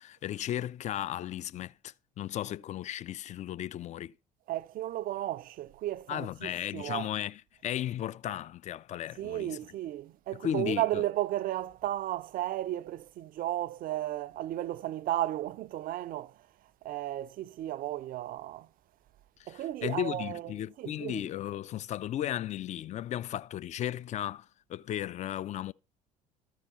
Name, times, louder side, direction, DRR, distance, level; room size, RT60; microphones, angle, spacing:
voice 1, 0.0-4.1 6.1-9.6 10.4-11.0 19.4-25.7, left 11 dB, 35° left, 0.4 m, -35 dB
voice 2, 4.5-7.1 9.2-16.4 16.8-18.7 19.5-21.3, right 14 dB, 45° right, 0.4 m, -34 dB
13.5 x 4.7 x 5.5 m
figure-of-eight pair, 55°, 20 cm